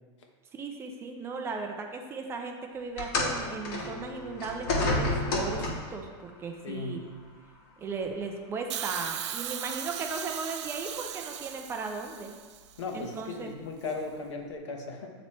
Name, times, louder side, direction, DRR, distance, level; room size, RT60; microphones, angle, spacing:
voice 1, 0.5-7.0 7.8-12.3 12.9-13.5, right 4 dB, 15° right, 3 dB, 0.4 m, -37 dB
sound 1, 3.0-6.0 7.0-7.2 8.0-8.1, left 2 dB, 50° left, 1.4 m, -30 dB
voice 2, 6.6-7.1 12.8-15.1, left 3 dB, 90° left, 2 dB, 1.1 m, -37 dB
Hiss, 8.7-12.8 13.9-14.0, right 10 dB, 75° right, 0.5 m, -38 dB
8.5 x 3.1 x 4.2 m, 1.5 s
supercardioid pair, 155°, 15 cm